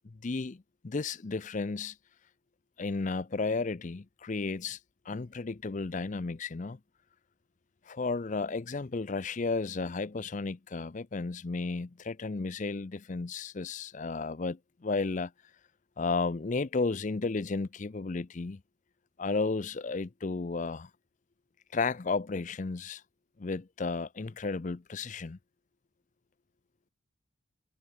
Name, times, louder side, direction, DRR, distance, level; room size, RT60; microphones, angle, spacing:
voice 1, 0.0-1.9 2.8-4.8 5.1-6.8 7.9-15.3 16.0-18.6 19.2-20.9 21.7-23.0 23.4-25.4, left 3 dB, 35° left, 0.5 m, -33 dB
head